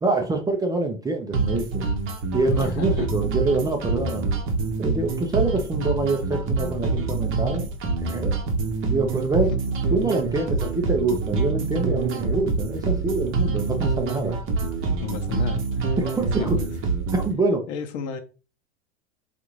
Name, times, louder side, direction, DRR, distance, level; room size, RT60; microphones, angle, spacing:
voice 1, 0.0-1.9 2.3-4.3 4.8-7.6 8.0-8.3 8.9-9.5 9.9-14.4 16.0-16.6 17.1-17.7, right 3 dB, 10° right, 0.4 m, -25 dB
sound 1, 1.3-17.3, right 4 dB, 35° right, 0.7 m, -26 dB
voice 2, 2.8-3.1 15.0-16.0 16.4-16.7 17.7-18.2, left 6 dB, 70° left, 0.8 m, -32 dB
3.6 x 2.5 x 3.0 m
supercardioid pair, 115°, 36 cm